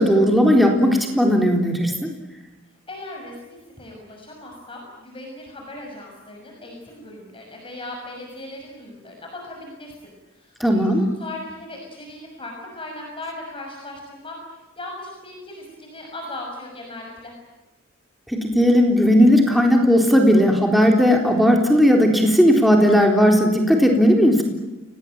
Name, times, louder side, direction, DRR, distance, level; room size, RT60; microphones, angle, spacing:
voice 1, 0.0-2.1 10.6-11.0 18.3-24.4, equal, ahead, 1 dB, 3.8 m, -16 dB
voice 2, 2.9-14.4 14.8-17.3, left 2 dB, 25° left, 0 dB, 6.3 m, -38 dB
29.0 x 19.5 x 9.1 m, 1.1 s
head